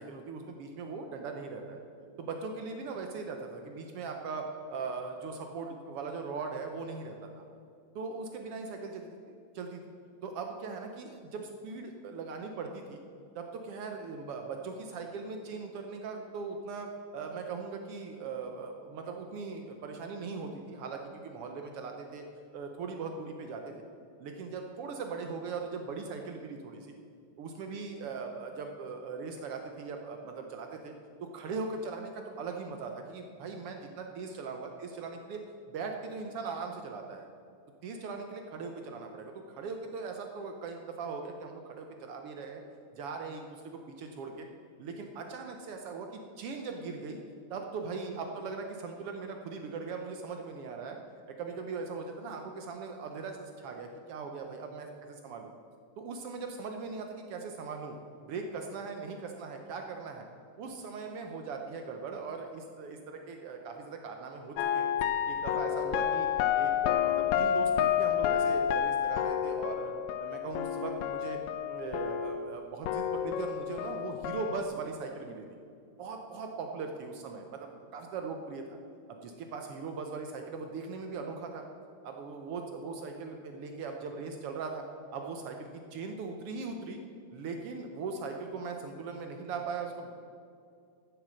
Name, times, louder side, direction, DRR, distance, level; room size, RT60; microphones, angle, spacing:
voice 1, 0.0-1.8 2.2-7.4 7.9-9.2 9.5-9.8 10.2-13.0 13.3-22.3 22.5-23.7 24.2-26.9 27.4-30.9 31.2-35.4 35.7-37.3 37.8-42.6 42.9-44.5 44.8-46.1 46.4-47.2 47.5-51.0 51.3-55.5 56.0-58.0 58.2-60.2 60.6-64.9 65.3-66.3 66.5-69.9 70.2-71.4 71.7-75.4 76.0-78.8 79.1-81.6 82.0-84.8 85.1-87.0 87.3-90.1, right 4 dB, 75° right, 4 dB, 1.4 m, -39 dB
sound 1, 64.6-72.6 72.8-74.6, left 9 dB, 80° left, 1.7 m, -30 dB
14.0 x 7.8 x 6.4 m, 2.4 s
omnidirectional pair, 3.6 m